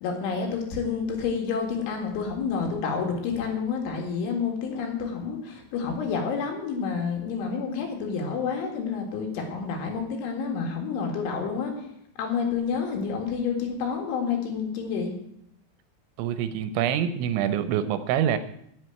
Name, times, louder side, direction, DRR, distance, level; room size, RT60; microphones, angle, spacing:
voice 1, 0.0-11.7 12.2-15.1, left 5 dB, 75° left, 2 dB, 4.3 m, -29 dB
voice 2, 16.2-18.4, right 9 dB, 80° right, 11 dB, 2.9 m, -25 dB
8.3 x 7.7 x 8.9 m, 0.72 s
omnidirectional pair, 5.5 m